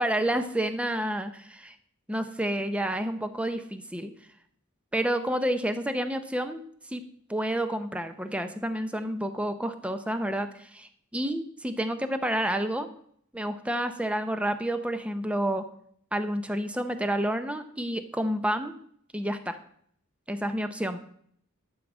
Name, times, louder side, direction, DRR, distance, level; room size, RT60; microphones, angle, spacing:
voice 1, 0.0-1.7 2.1-4.1 4.9-7.0 7.3-12.9 13.3-15.6 16.1-18.7 19.1-19.6 20.3-21.0, right 1 dB, 5° right, 8 dB, 0.7 m, -29 dB
12.0 x 4.7 x 7.3 m, 0.64 s
head